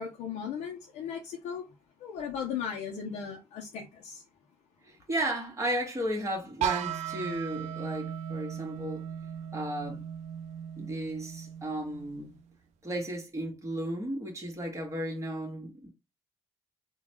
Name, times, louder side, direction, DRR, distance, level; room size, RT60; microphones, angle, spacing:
voice 1, 0.0-1.7 2.0-4.2, left 7 dB, 80° left, 0.6 m, -37 dB
voice 2, 4.8-9.0 9.5-10.0 10.8-12.4 12.8-15.9, right 1 dB, 25° right, 1.5 m, -34 dB
sound 1, 6.6-12.4, right 9 dB, 75° right, 0.4 m, -37 dB
3.8 x 2.3 x 2.9 m
supercardioid pair, 50°, 12 cm